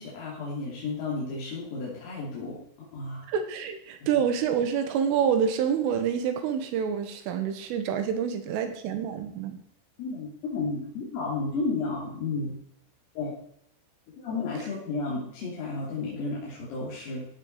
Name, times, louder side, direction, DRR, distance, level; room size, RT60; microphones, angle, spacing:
voice 1, 0.0-3.3 10.0-12.6 13.2-13.4 14.2-17.3, left 3 dB, 85° left, -6 dB, 5.7 m, -32 dB
voice 2, 3.3-9.6, right 7 dB, 80° right, 7 dB, 3.8 m, -27 dB
15.5 x 8.9 x 4.8 m, 0.69 s
omnidirectional pair, 5.8 m